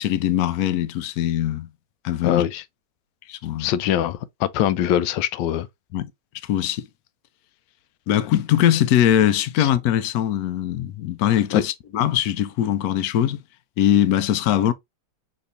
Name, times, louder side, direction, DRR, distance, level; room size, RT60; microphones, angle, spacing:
voice 1, 0.0-1.7 2.0-2.5 3.3-3.7 5.9-6.1 6.4-6.9 8.1-13.4 13.8-14.7, left 11 dB, 70° left, 1.0 m, -21 dB
voice 2, 2.2-2.6 3.6-5.7 9.6-9.7 11.5-11.6, left 11 dB, 90° left, 1.3 m, -23 dB
6.4 x 3.0 x 2.6 m
omnidirectional pair, 1.9 m